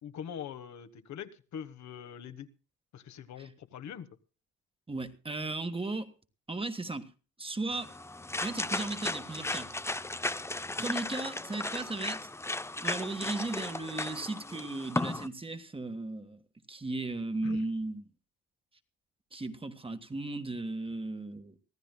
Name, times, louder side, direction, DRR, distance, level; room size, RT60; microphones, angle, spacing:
voice 1, 0.0-2.5 2.9-4.1 17.4-17.6, left 8 dB, 70° left, 1.3 m, -43 dB
voice 2, 4.9-6.1 6.5-7.1 7.4-7.9 8.4-9.7 10.7-12.3 12.8-16.4 16.7-18.0 19.3-21.6, right 2 dB, 20° right, 1.4 m, -36 dB
sound 1, 7.7-15.3, left 2 dB, 10° left, 0.6 m, -35 dB
24.5 x 15.0 x 2.2 m
cardioid pair, 90°, 30 cm